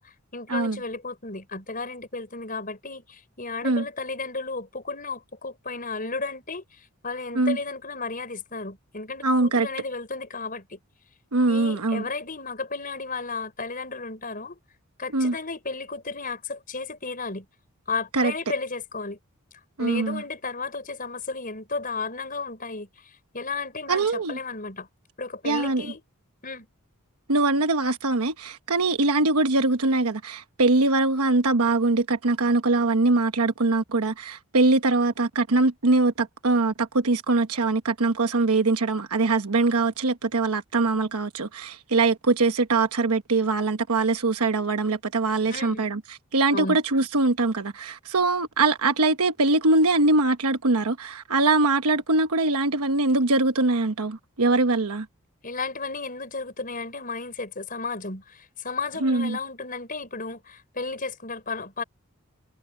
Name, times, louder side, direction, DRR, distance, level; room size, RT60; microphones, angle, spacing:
voice 1, 0.0-10.8 11.5-14.6 15.0-17.5 17.9-19.2 19.8-24.9 25.2-26.0 26.4-26.7 45.4-45.9 46.5-46.8 55.4-61.8, left 3 dB, 40° left, 5.5 m, -33 dB
voice 2, 9.2-9.7 11.3-12.0 15.1-15.3 18.1-18.3 19.8-20.2 23.9-24.4 25.4-25.9 27.3-55.1 59.0-59.4, right 3 dB, 90° right, 1.1 m, -22 dB
head